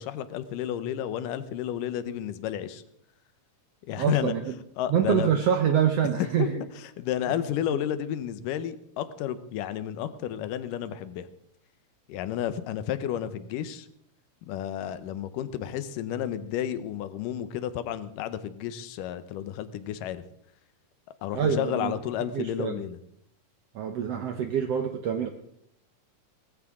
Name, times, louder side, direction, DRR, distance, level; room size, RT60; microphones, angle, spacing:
voice 1, 0.0-2.8 3.9-4.3 4.8-5.3 6.4-6.5 6.8-11.3 12.1-13.9 14.5-20.2 21.2-23.0, left 10 dB, 80° left, 12 dB, 2.5 m, -32 dB
voice 2, 4.0-4.4 4.9-6.6 21.3-22.0 22.3-22.8 23.7-25.3, right 8 dB, 70° right, 6 dB, 1.5 m, -26 dB
19.0 x 15.0 x 3.7 m, 0.70 s
omnidirectional pair, 3.8 m